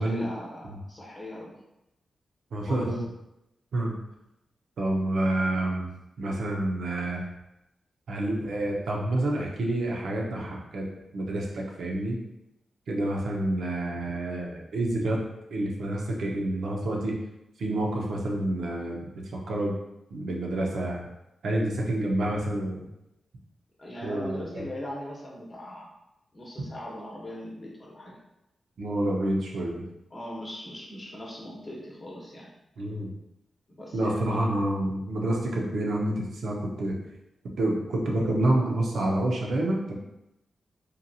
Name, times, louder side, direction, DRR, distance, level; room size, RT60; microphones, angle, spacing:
voice 1, 0.0-1.6 2.7-3.0 23.8-25.9 26.3-28.2 30.1-32.5 33.7-34.5, left 1 dB, 30° left, -3 dB, 0.8 m, -40 dB
voice 2, 2.5-3.0 3.7-3.9 4.8-5.9 6.2-7.2 8.1-10.9 11.1-12.2 12.9-15.2 15.5-17.1 17.6-19.7 20.1-21.0 21.4-22.8 24.0-24.6 28.8-29.8 32.8-33.1 33.9-37.0 37.6-40.0, right 1 dB, 80° right, -1 dB, 0.5 m, -28 dB
2.8 x 2.2 x 2.6 m, 0.89 s
cardioid pair, 80°, 0 cm